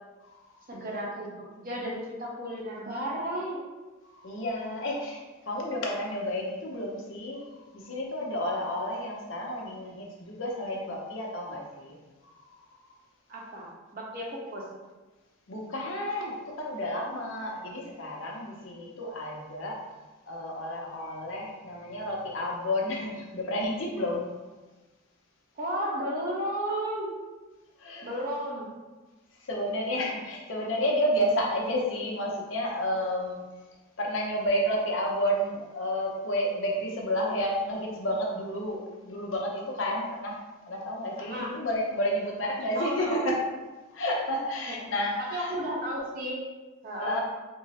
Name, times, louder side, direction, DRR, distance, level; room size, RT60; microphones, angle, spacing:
voice 1, 0.7-3.6 13.3-14.6 25.6-27.1 28.0-28.7 41.2-41.5 42.7-43.3 45.3-46.4 46.8-47.2, right 1 dB, 40° right, -3 dB, 0.8 m, -33 dB
voice 2, 4.2-7.5 7.7-11.9 15.5-19.8 20.3-24.2 27.8-28.1 29.4-33.4 34.0-40.4 40.7-43.4 43.9-45.5 47.0-47.2, equal, 60° left, -2 dB, 0.7 m, -31 dB
3.7 x 2.0 x 4.1 m, 1.2 s
head